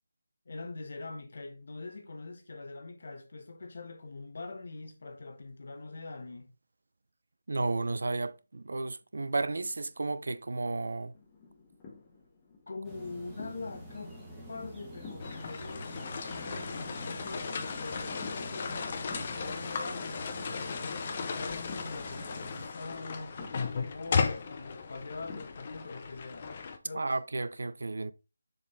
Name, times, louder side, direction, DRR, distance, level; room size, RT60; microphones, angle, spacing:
voice 1, 0.4-6.5 12.7-14.2 14.5-26.5 26.8-27.1, left 3 dB, 60° left, 1.3 m, -43 dB
voice 2, 7.5-11.1 26.9-28.1, right 3 dB, 75° right, 0.5 m, -33 dB
sound 1, 11.1-25.7, left 4 dB, 20° left, 1.3 m, -53 dB
sound 2, 12.8-22.7, right 1 dB, ahead, 1.5 m, -46 dB
sound 3, 15.2-26.8, left 5 dB, 35° left, 0.6 m, -36 dB
6.9 x 3.9 x 3.5 m
figure-of-eight pair, 170°, 0 cm